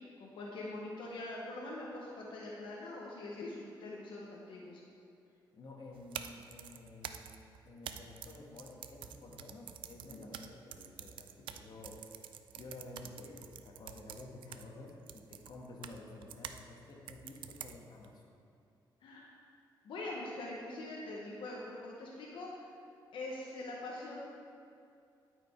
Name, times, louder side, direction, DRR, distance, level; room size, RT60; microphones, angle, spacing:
voice 1, 0.2-4.8 10.0-10.3 19.0-19.3 19.8-22.7 23.1-24.2, left 2 dB, 80° left, -3 dB, 1.1 m, -43 dB
voice 2, 5.5-7.3 7.6-12.2 12.5-18.3, left 2 dB, 55° left, -1 dB, 1.4 m, -51 dB
sound 1, 5.9-16.6 17.1-18.1, right 9 dB, 80° right, 0.4 m, -48 dB
12.0 x 5.1 x 4.5 m, 2.4 s
cardioid pair, 105°, 8 cm